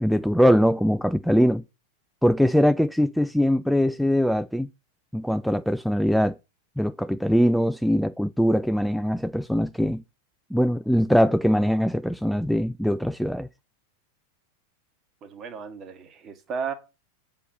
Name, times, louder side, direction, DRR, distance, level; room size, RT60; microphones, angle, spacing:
voice 1, 0.0-1.6 2.2-4.7 5.1-6.3 6.8-10.0 10.5-13.5, equal, ahead, 0.3 m, -22 dB
voice 2, 15.2-16.7, right 6 dB, 30° right, 1.7 m, -34 dB
8.2 x 4.3 x 6.5 m
figure-of-eight pair, 90°, 0 cm